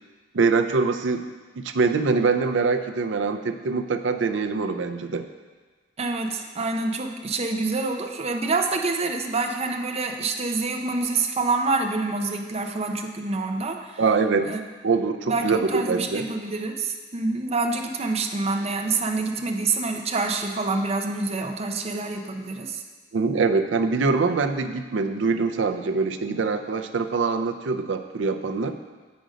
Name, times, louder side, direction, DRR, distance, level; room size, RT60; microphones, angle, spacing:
voice 1, 0.3-1.3 1.6-5.3 14.0-14.5 14.8-16.2 23.1-28.7, right 4 dB, 80° right, 7 dB, 0.5 m, -24 dB
voice 2, 6.0-14.0 14.4-14.6 15.3-22.8, right 3 dB, 35° right, 3 dB, 0.6 m, -27 dB
7.7 x 5.2 x 5.0 m, 1.4 s
head